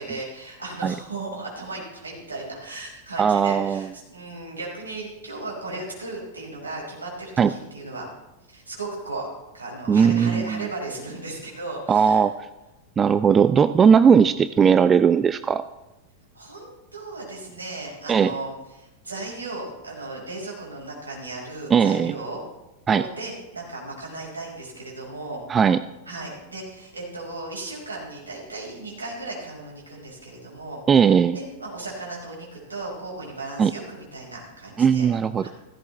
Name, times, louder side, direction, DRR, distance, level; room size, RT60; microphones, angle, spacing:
voice 1, 0.0-8.1 8.5-9.3 9.5-12.2 16.3-22.4 22.9-25.4 26.1-30.8 31.3-35.1 35.4-35.5, right 2 dB, 75° right, -3 dB, 5.4 m, -36 dB
voice 2, 3.2-3.8 7.4-7.5 9.9-10.7 11.9-12.3 13.0-15.6 18.1-18.3 21.7-22.1 22.9-23.1 25.5-25.8 30.9-31.4 33.6-33.7 34.8-35.5, right 7 dB, 20° right, 14 dB, 0.4 m, -18 dB
16.0 x 16.0 x 3.4 m, 1.0 s
figure-of-eight pair, 90°, 0 cm